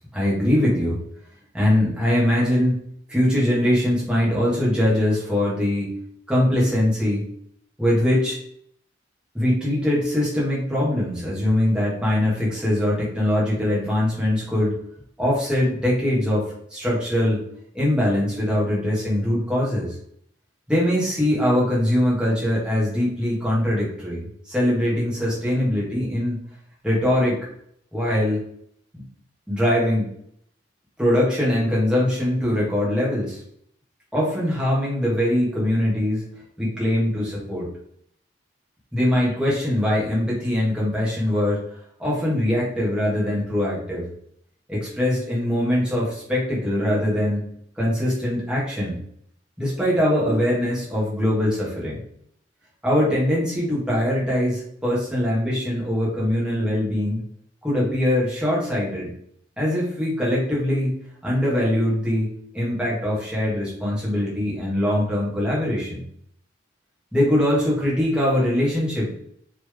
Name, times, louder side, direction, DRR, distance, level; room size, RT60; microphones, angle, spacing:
voice 1, 0.1-1.0 1.5-2.8 3.1-5.9 6.3-7.3 7.8-8.4 9.3-14.7 15.2-17.4 17.7-19.9 20.7-26.4 26.8-27.4 27.9-28.4 28.9-29.0 29.5-30.1 31.0-33.4 34.1-36.2 36.6-37.7 38.9-41.6 42.0-44.0 44.7-47.4 47.8-49.0 49.6-52.0 52.8-57.2 57.6-59.1 59.6-61.0 61.2-66.0 67.1-69.1, left 1 dB, 5° right, -7 dB, 2.7 m, -22 dB
7.3 x 4.1 x 4.0 m, 0.68 s
head